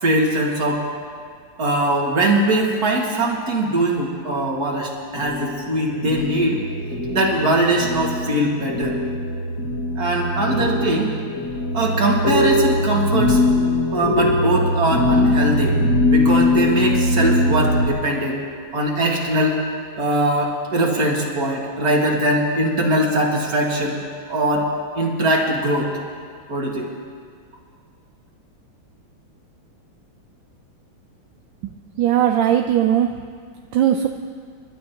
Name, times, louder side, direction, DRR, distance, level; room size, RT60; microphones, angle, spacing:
voice 1, 0.0-0.8 1.6-6.6 7.1-9.0 10.0-11.1 11.7-13.4 13.9-15.7 16.0-18.4 18.7-19.6 20.0-24.0 24.3-24.7 25.0-25.9 26.5-26.9, right 1 dB, 45° right, -1 dB, 2.3 m, -21 dB
sound 1, 5.1-17.9, left 1 dB, 50° left, 2.3 m, -21 dB
voice 2, 32.0-33.1 33.7-34.1, right 10 dB, 70° right, 5 dB, 1.2 m, -18 dB
30.0 x 12.0 x 2.9 m, 2.1 s
omnidirectional pair, 2.4 m